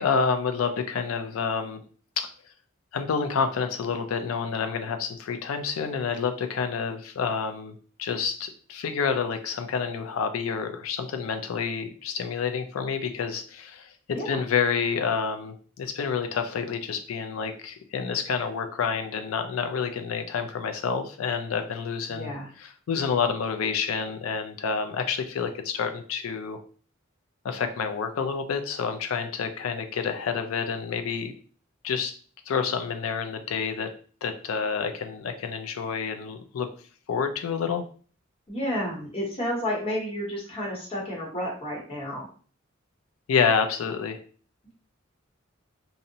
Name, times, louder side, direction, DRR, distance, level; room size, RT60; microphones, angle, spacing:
voice 1, 0.0-1.8 2.2-2.3 2.9-13.9 14.3-22.3 22.6-26.6 27.4-31.3 31.8-32.1 32.5-33.9 34.2-36.7 37.1-37.8 43.3-44.2, left 6 dB, 85° left, 8 dB, 0.4 m, -28 dB
voice 2, 22.1-22.5 38.5-42.3, equal, 30° left, -3 dB, 0.9 m, -31 dB
2.6 x 2.0 x 2.7 m, 0.42 s
head